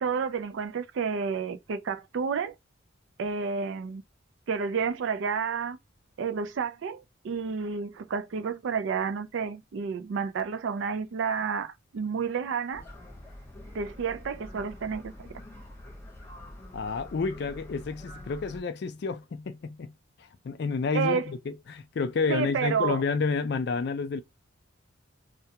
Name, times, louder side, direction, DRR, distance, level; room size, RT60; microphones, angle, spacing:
voice 1, 0.0-2.6 3.2-4.0 4.5-5.8 6.2-12.8 13.7-15.3 20.9-21.3 22.3-23.0, right 5 dB, 65° right, 0.3 m, -30 dB
sound 1, 12.7-18.6, left 1 dB, 10° left, 0.7 m, -46 dB
voice 2, 16.7-19.9 20.2-24.2, left 4 dB, 55° left, 0.3 m, -30 dB
2.2 x 2.1 x 2.8 m
head